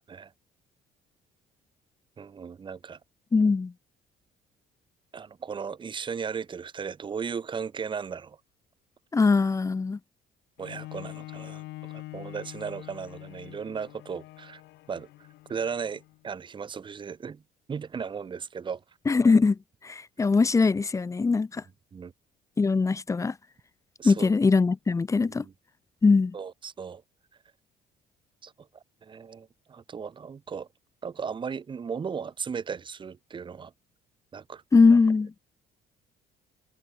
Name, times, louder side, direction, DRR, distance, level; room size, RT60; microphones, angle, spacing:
voice 1, 2.2-3.0 5.1-8.4 10.6-14.6 14.9-17.4 17.7-18.8 21.9-22.1 24.0-24.3 25.2-25.5 26.3-27.0 28.4-30.7 31.0-33.7 34.3-34.6, right 6 dB, 30° right, 1.0 m, -36 dB
voice 2, 3.3-3.7 9.1-10.0 19.1-19.6 19.8-21.6 22.6-23.3 24.0-25.4 26.0-26.3 34.7-35.3, left 4 dB, 20° left, 0.7 m, -21 dB
Bowed string instrument, 10.6-16.2 16.9-17.0, left 19 dB, 85° left, 1.3 m, -44 dB
cardioid pair, 110°, 17 cm